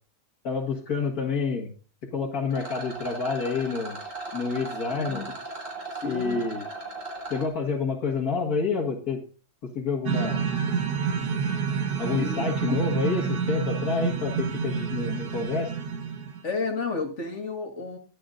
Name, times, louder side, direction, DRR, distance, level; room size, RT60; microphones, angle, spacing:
voice 1, 0.4-1.7 2.1-4.0 4.3-5.2 6.0-6.7 7.3-9.2 9.7-10.4 12.0-15.7, left 5 dB, 75° left, -1 dB, 2.2 m, -28 dB
Rattle, 2.5-7.5, right 3 dB, 55° right, 3.9 m, -37 dB
voice 2, 4.9-5.3 6.0-6.4 12.1-12.8 16.4-18.0, left 4 dB, 50° left, 4 dB, 2.0 m, -32 dB
sound 1, 10.1-16.4, right 6 dB, 80° right, 1.8 m, -28 dB
21.0 x 7.8 x 2.6 m, 0.36 s
omnidirectional pair, 1.6 m